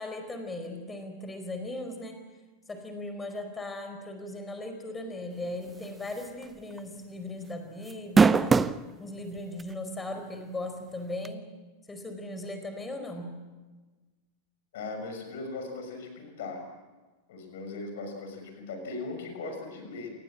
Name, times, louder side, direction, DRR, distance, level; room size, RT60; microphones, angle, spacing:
voice 1, 0.0-2.2 2.7-8.6 9.0-11.5 11.9-13.3, left 2 dB, 15° left, 6 dB, 4.6 m, -38 dB
sound 1, 6.2-6.4 6.8-6.9 7.9-8.8 9.6-9.7 11.2-11.3, right 5 dB, 15° right, 0.7 m, -20 dB
voice 2, 14.7-16.6 17.3-20.1, left 3 dB, 55° left, 5 dB, 6.4 m, -38 dB
28.0 x 20.0 x 7.6 m, 1.3 s
figure-of-eight pair, 90°, 0 cm